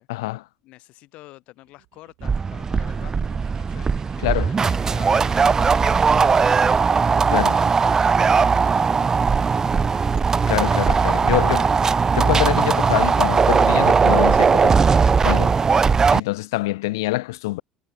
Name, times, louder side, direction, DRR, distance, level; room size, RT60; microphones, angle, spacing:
voice 1, 0.1-0.4 4.2-4.5 7.3-7.6 10.5-11.7 12.1-14.8 15.2-15.5 16.1-17.6, left 20 dB, 85° left, 0.5 m, -25 dB
voice 2, 0.6-6.0 15.1-15.4, left 19 dB, 70° left, 7.5 m, -48 dB
sound 1, 1.6-7.7, right 34 dB, 75° right, 7.2 m, -53 dB
sound 2, 2.2-16.2, right 5 dB, 25° right, 0.4 m, -18 dB
supercardioid pair, 80°, 2 cm